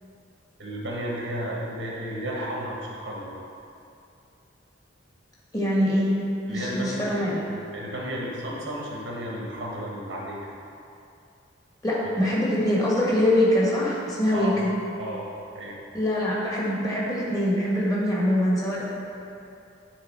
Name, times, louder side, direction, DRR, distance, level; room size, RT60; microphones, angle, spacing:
voice 1, 0.6-3.3 6.5-7.0 7.5-10.5 14.3-14.5 15.0-15.3 15.5-15.8, right 1 dB, 80° right, -3 dB, 1.3 m, -33 dB
voice 2, 5.5-6.1 6.5-7.4 11.8-14.5 15.9-18.8, left 1 dB, 20° left, -6 dB, 1.5 m, -23 dB
9.5 x 3.8 x 4.4 m, 2.6 s
head